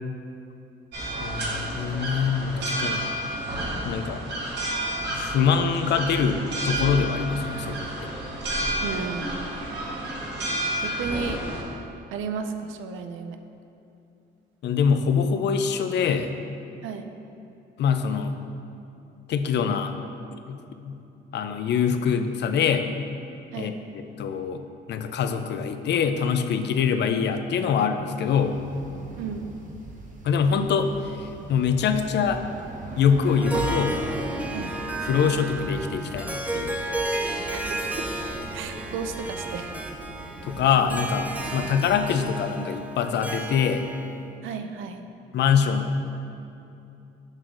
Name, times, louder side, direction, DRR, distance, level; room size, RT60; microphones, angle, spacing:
sound 1, 0.9-11.6, right 1 dB, 60° right, 1.2 m, -30 dB
voice 1, 1.2-3.1 3.8-4.2 5.1-8.1 14.6-16.3 17.8-18.4 19.3-19.9 20.5-21.0 21.3-22.8 23.6-24.6 24.9-28.6 30.2-30.9 31.2-32.4 33.0-34.0 35.0-36.8 40.4-43.9 45.3-46.1, left 6 dB, 60° left, 8 dB, 0.4 m, -24 dB
voice 2, 8.8-9.5 10.8-11.4 12.1-13.4 16.8-17.1 23.5-23.8 29.2-29.5 34.5-34.7 37.5-37.6 37.9-38.0 38.5-39.7 44.4-45.1, right 6 dB, 85° right, 7 dB, 0.4 m, -33 dB
sound 2, 28.3-42.2, right 2 dB, 40° right, 0.8 m, -39 dB
Harp, 33.3-44.2, right 2 dB, 5° right, 0.4 m, -33 dB
6.4 x 6.2 x 2.5 m, 2.8 s
cardioid pair, 90°, 20 cm